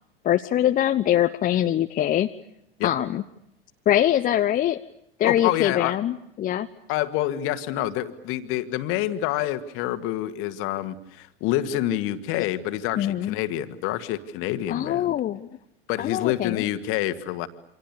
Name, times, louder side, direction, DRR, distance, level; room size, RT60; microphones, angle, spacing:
voice 1, 0.2-2.3 2.8-3.2 3.9-4.8 5.2-6.7 13.0-13.3 14.7-15.5 16.0-16.7, left 11 dB, 25° left, 7 dB, 0.9 m, -23 dB
voice 2, 5.2-6.0 6.9-15.2 15.9-17.5, left 13 dB, 45° left, 10 dB, 2.0 m, -27 dB
28.5 x 26.0 x 6.9 m, 0.80 s
figure-of-eight pair, 80°, 30 cm